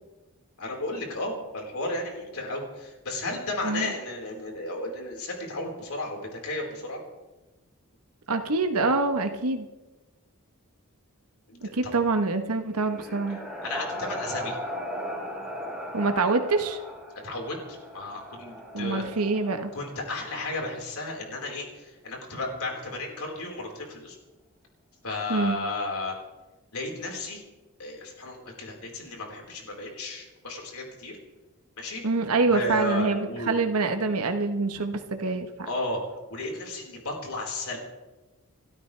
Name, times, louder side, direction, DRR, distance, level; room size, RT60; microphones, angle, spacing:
voice 1, 0.6-7.0 11.5-12.0 13.6-14.6 17.2-19.0 19.7-24.2 25.0-26.1 26.7-27.4 27.8-31.2 31.8-32.0 32.5-33.6 35.6-36.0 36.3-37.8, left 2 dB, 75° left, 0 dB, 4.6 m, -33 dB
voice 2, 8.3-9.7 11.6-13.4 15.9-16.8 18.7-19.7 25.3-25.6 32.0-35.5, right 3 dB, 85° right, 6 dB, 1.1 m, -25 dB
sound 1, 12.5-20.3, equal, 5° right, 4.1 m, -38 dB
29.0 x 13.0 x 3.4 m, 1.2 s
head